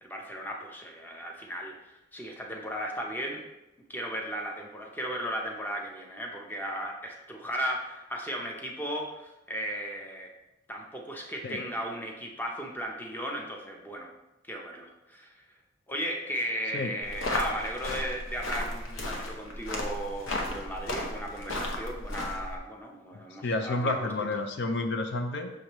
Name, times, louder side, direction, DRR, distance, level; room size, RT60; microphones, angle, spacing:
voice 1, 0.0-3.5 3.9-10.3 10.7-14.1 14.5-15.5 15.9-24.1, equal, 10° left, 0 dB, 0.7 m, -36 dB
sound 1, 17.0-22.6, left 1 dB, 75° left, 0.9 m, -34 dB
voice 2, 23.4-25.5, left 2 dB, 60° left, 6 dB, 0.5 m, -30 dB
6.4 x 5.0 x 3.0 m, 0.94 s
head